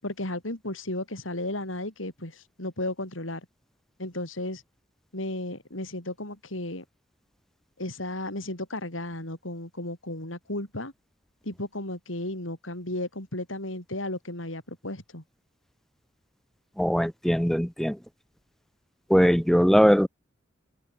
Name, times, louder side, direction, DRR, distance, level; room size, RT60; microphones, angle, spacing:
voice 1, 0.0-3.5 4.0-4.6 5.1-6.8 7.8-10.9 11.4-15.2, left 1 dB, 90° left, 7.3 m, -34 dB
voice 2, 16.8-18.0 19.1-20.1, equal, ahead, 0.8 m, -20 dB
head